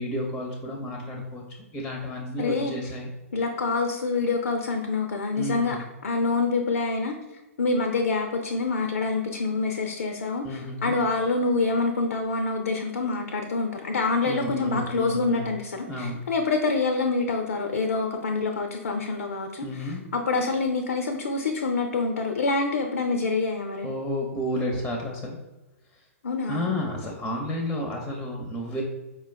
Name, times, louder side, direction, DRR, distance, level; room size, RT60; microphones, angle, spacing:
voice 1, 0.0-1.4 1.7-3.1 5.4-5.8 10.4-10.9 14.2-15.5 15.8-16.2 19.6-20.0 23.8-25.4 26.5-28.8, left 1 dB, 10° left, 0 dB, 0.6 m, -31 dB
voice 2, 2.4-2.7 3.3-7.1 7.6-23.9 26.2-26.7, left 3 dB, 75° left, 5 dB, 0.4 m, -26 dB
4.6 x 2.3 x 3.2 m, 1.1 s
figure-of-eight pair, 110°, 8 cm